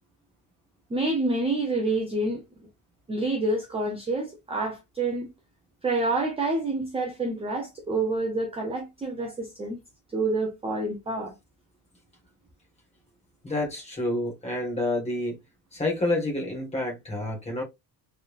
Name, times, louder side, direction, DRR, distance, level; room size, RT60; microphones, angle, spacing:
voice 1, 0.9-2.4 3.1-5.3 5.8-9.8 10.1-11.3, right 2 dB, 15° right, 0.6 m, -28 dB
voice 2, 13.4-15.4 15.7-17.6, left 2 dB, 15° left, 1.5 m, -28 dB
4.0 x 3.4 x 2.4 m
cardioid pair, 170°, 46 cm